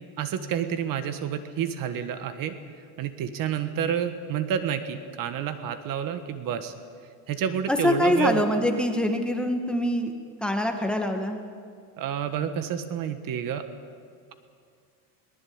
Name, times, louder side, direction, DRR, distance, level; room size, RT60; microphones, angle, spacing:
voice 1, 0.2-2.6 3.0-6.7 7.3-8.4 12.0-13.6, right 8 dB, 45° right, 10 dB, 1.6 m, -29 dB
voice 2, 7.7-10.1 10.4-11.4, left 1 dB, ahead, 4 dB, 1.9 m, -24 dB
22.5 x 19.5 x 8.8 m, 2.2 s
cardioid pair, 140°, 45 cm